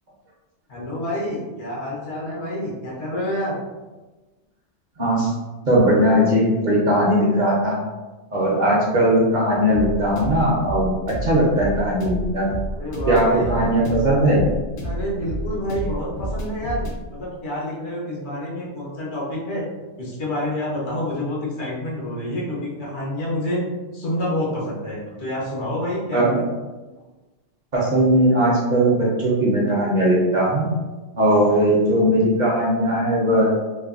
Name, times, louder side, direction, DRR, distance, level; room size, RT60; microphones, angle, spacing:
voice 1, 0.7-3.6 12.8-13.6 14.8-19.7 20.0-23.7 23.9-26.5, left 1 dB, 75° left, -5 dB, 1.2 m, -28 dB
voice 2, 5.0-5.3 5.7-7.8 8.3-12.5 13.1-14.5 26.1-26.4 27.7-30.7 31.1-33.5, right 1 dB, 50° right, -5 dB, 0.7 m, -19 dB
sound 1, 9.7-17.0, equal, 55° left, 0.7 m, -29 dB
3.1 x 2.1 x 2.4 m, 1.2 s
omnidirectional pair, 1.2 m